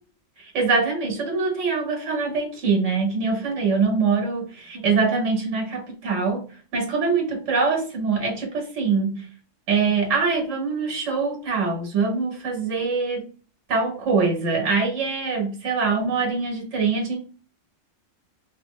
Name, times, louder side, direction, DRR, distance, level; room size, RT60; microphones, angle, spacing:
voice 1, 0.4-6.4 6.7-9.3 9.7-13.2 13.7-17.2, right 4 dB, 70° right, 1.5 m, -23 dB
3.0 x 2.9 x 3.1 m
omnidirectional pair, 1.3 m